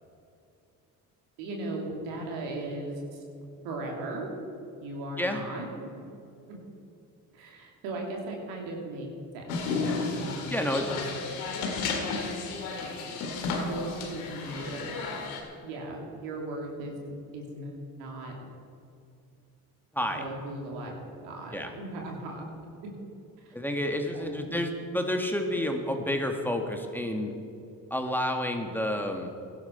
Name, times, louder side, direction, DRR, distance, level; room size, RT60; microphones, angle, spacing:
voice 1, 1.4-3.2 3.6-4.3 4.8-5.7 5.9-6.0 6.5-6.6 7.3-9.1 9.3-11.0 13.5-14.8 15.6-18.5 20.0-20.9 21.2-22.7 24.1-24.5, right 2 dB, 85° right, 0 dB, 2.9 m, -38 dB
sound 1, 9.5-15.4, left 4 dB, 90° left, 2.1 m, -33 dB
voice 2, 10.5-11.1 19.9-20.2 21.5-21.7 23.5-27.3 27.9-29.3, left 1 dB, 5° left, 3 dB, 1.9 m, -30 dB
16.5 x 11.5 x 4.5 m, 2.6 s
hypercardioid pair, 60°, 43 cm